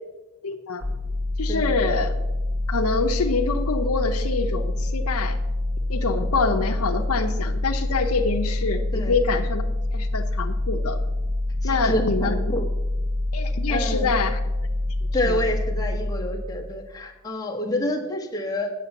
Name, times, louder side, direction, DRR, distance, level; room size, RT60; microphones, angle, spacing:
voice 1, 0.4-0.8 1.4-2.1 2.7-5.4 5.9-9.6 9.9-11.0 11.6-12.5 13.3-14.4 15.2-15.4 17.6-17.9, left 4 dB, 75° left, 7 dB, 0.7 m, -26 dB
sound 1, 0.8-16.6, left 1 dB, 55° right, 1.6 m, -26 dB
voice 2, 11.6-12.6 13.7-14.1 15.1-18.7, left 1 dB, 15° left, 0 dB, 1.2 m, -28 dB
8.5 x 6.6 x 7.1 m, 1.1 s
head